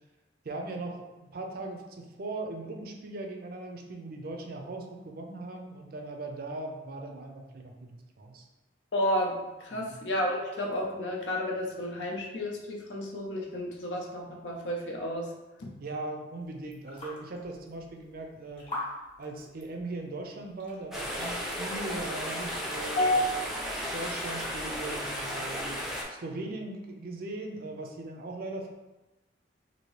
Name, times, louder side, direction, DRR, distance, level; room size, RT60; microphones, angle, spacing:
voice 1, 0.4-1.0 1.3-8.5 9.7-10.0 15.8-18.7 19.2-23.1 23.9-25.8 26.1-28.7, right 2 dB, 55° right, 3 dB, 0.5 m, -39 dB
voice 2, 8.9-15.3 15.6-15.7 23.0-23.3, left 1 dB, 80° left, 0 dB, 0.6 m, -31 dB
sound 1, 16.4-24.9, left 1 dB, 30° left, 0.9 m, -46 dB
sound 2, 20.9-26.0, equal, ahead, 0.5 m, -34 dB
2.9 x 2.6 x 3.1 m, 1.1 s
head